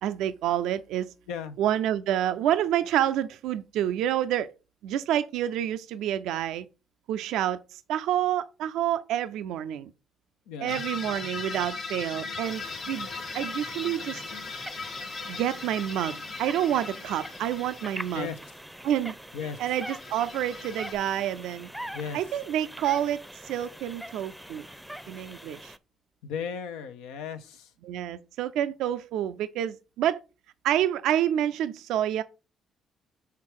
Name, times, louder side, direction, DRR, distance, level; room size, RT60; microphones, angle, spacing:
voice 1, 0.0-1.1 1.6-4.5 4.8-6.6 7.1-9.9 10.6-13.1 13.3-14.2 15.3-18.3 18.8-19.2 19.6-21.7 22.1-24.6 25.1-25.7 27.8-30.2 30.6-32.2, right 11 dB, 75° right, 0.4 m, -28 dB
voice 2, 10.5-10.8 18.1-18.4 19.3-19.6 21.9-22.4 26.2-27.7, left 7 dB, 85° left, 0.7 m, -36 dB
sound 1, 10.7-18.5 19.6-20.9, left 4 dB, 65° left, 1.4 m, -38 dB
sound 2, 12.4-25.8, equal, 5° right, 0.6 m, -43 dB
5.6 x 3.5 x 4.7 m
supercardioid pair, 55°, 0 cm